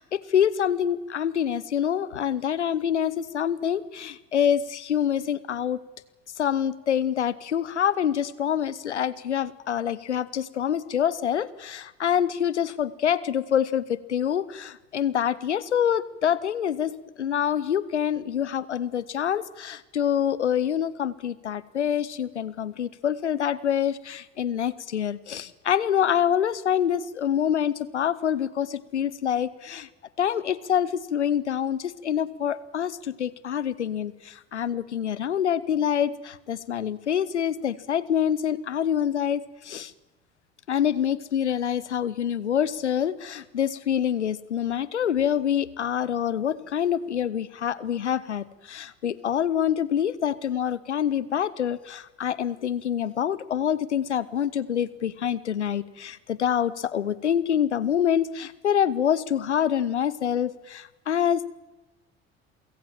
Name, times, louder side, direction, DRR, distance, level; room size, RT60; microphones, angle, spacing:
voice 1, 0.0-5.8 6.4-16.9 17.2-29.9 30.2-39.9 40.7-61.4, left 9 dB, 85° left, 19 dB, 0.8 m, -26 dB
28.0 x 16.5 x 7.4 m, 1.1 s
figure-of-eight pair, 55°, 34 cm